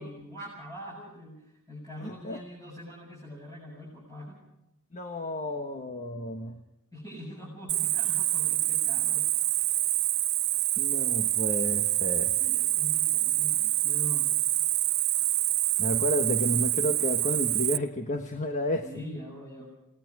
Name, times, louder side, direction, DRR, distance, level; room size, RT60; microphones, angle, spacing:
voice 1, 0.0-4.4 6.9-9.3 12.4-14.5 18.8-19.7, left 1 dB, 15° left, -5 dB, 7.4 m, -43 dB
voice 2, 2.0-2.4 4.9-6.6 10.8-12.3 15.8-18.9, left 1 dB, 35° left, 5 dB, 1.3 m, -31 dB
Cricket, 7.7-17.8, right 15 dB, 45° right, 0.7 m, -26 dB
28.5 x 19.5 x 4.8 m, 0.89 s
head